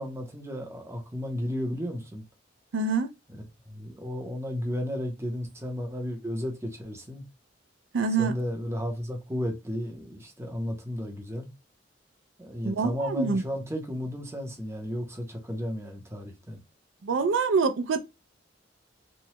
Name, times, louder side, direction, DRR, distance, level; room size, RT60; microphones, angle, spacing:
voice 1, 0.0-2.3 3.3-7.2 8.2-11.5 12.4-16.6, equal, 15° right, 0.7 m, -33 dB
voice 2, 2.7-3.1 7.9-8.3 12.6-13.4 17.0-18.0, right 4 dB, 85° right, 0.4 m, -25 dB
3.1 x 2.2 x 2.9 m
head